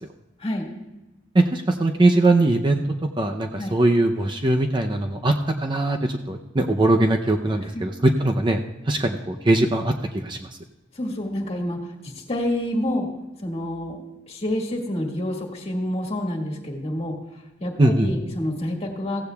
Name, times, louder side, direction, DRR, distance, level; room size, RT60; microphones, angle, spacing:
voice 1, 1.3-2.8 3.2-5.3 5.6-8.6 8.9-10.5 17.8-18.1, right 2 dB, 25° right, 4 dB, 0.6 m, -21 dB
voice 2, 11.0-11.8 12.0-13.1 13.4-14.0 14.3-17.1 17.6-19.2, left 1 dB, 35° left, 0 dB, 2.0 m, -28 dB
16.0 x 15.0 x 2.3 m, 1.0 s
head